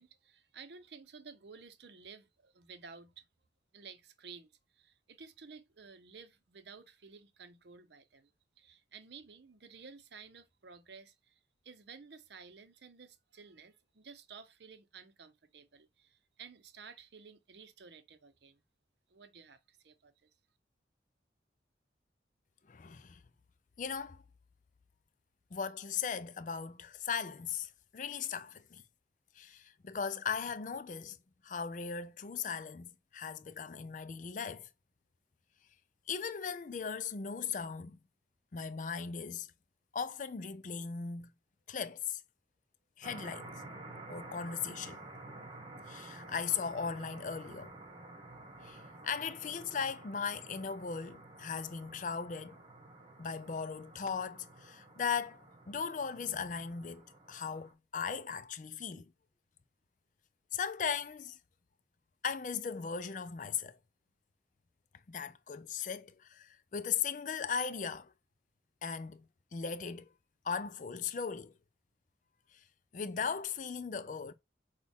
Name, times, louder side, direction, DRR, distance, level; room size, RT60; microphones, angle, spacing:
voice 1, 0.0-3.2 3.7-8.3 8.6-18.6 19.1-20.3, right 5 dB, 65° right, 0.7 m, -54 dB
voice 2, 22.7-23.2 23.8-24.2 25.5-28.8 29.4-31.2 31.4-34.7 36.1-38.0 38.5-39.5 39.9-41.3 41.7-42.2 43.0-43.5 44.1-45.0 45.9-47.7 48.6-52.6 53.2-59.1 60.5-61.4 62.2-63.8 65.1-68.1 68.8-70.1 70.4-71.5 72.9-74.3, left 6 dB, 45° left, 0.4 m, -38 dB
sound 1, 43.0-57.7, right 2 dB, 25° right, 1.2 m, -51 dB
6.2 x 2.3 x 3.5 m
head